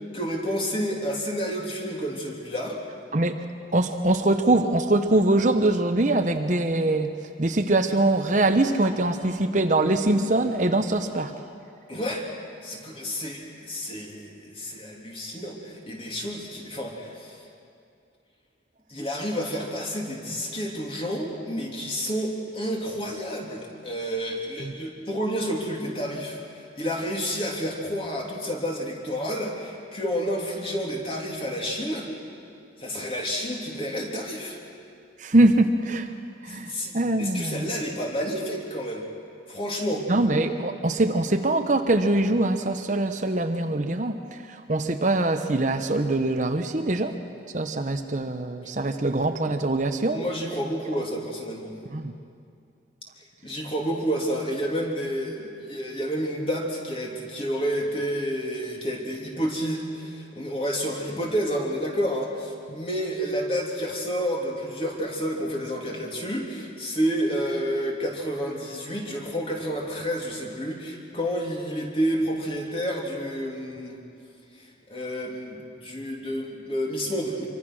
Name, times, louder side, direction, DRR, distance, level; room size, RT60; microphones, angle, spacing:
voice 1, 0.1-2.8 11.9-12.3 12.6-17.4 18.9-32.1 32.8-34.6 36.5-39.0 39.5-40.1 48.8-48.9 50.1-51.7 53.4-74.0 74.9-77.5, equal, 30° left, -1 dB, 3.1 m, -30 dB
voice 2, 3.1-3.4 3.7-7.1 7.4-11.3 24.6-24.7 35.2-36.1 36.4-37.8 40.1-47.2 47.5-50.2 51.9-52.1, right 2 dB, 40° right, 7 dB, 0.9 m, -23 dB
26.0 x 24.0 x 6.3 m, 2.4 s
head